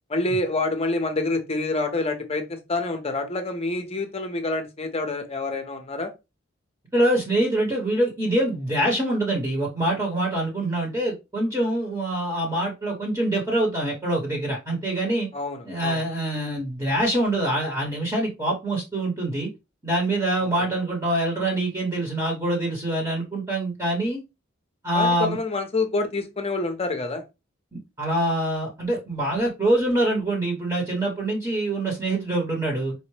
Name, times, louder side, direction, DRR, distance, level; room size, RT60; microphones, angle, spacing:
voice 1, 0.1-6.1 15.3-16.0 24.9-27.2, left 2 dB, 30° left, 0.6 m, -27 dB
voice 2, 6.9-15.3 15.6-19.5 19.8-24.2 24.8-25.4 27.7-32.9, right 1 dB, 15° right, 0.9 m, -25 dB
4.3 x 2.0 x 3.1 m
head